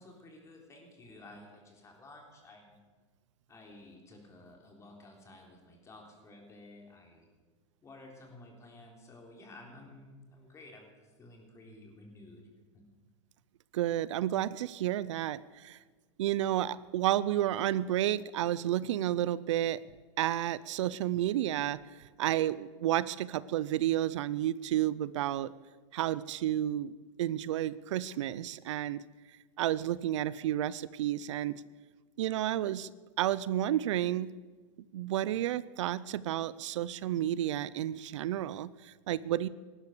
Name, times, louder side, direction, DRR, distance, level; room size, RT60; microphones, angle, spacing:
voice 1, 0.0-2.8 3.5-7.3 7.8-12.5 12.7-12.8, left 2 dB, 20° left, 1 dB, 3.7 m, -53 dB
voice 2, 13.7-15.8 16.2-19.8 20.2-21.8 22.2-25.5 25.9-26.9 27.2-29.0 29.6-31.6 32.2-32.9 33.2-34.3 34.9-39.5, right 12 dB, 75° right, 18 dB, 0.6 m, -31 dB
17.0 x 12.0 x 6.8 m, 1.4 s
supercardioid pair, 140°, 16 cm